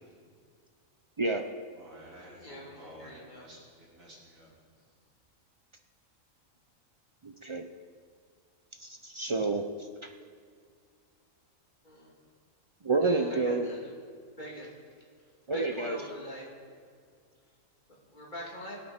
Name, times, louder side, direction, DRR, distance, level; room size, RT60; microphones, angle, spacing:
voice 1, 1.7-5.0, equal, 80° right, -4 dB, 3.6 m, -52 dB
voice 2, 2.4-3.4 11.8-12.1 13.0-13.9 14.4-14.7 15.5-16.5 18.1-18.8, equal, 35° left, -4 dB, 3.1 m, -43 dB
voice 3, 7.2-7.7 8.8-10.1 12.8-13.7 15.5-16.0, right 3 dB, 50° right, 5 dB, 0.3 m, -29 dB
21.5 x 8.7 x 4.4 m, 2.1 s
omnidirectional pair, 1.4 m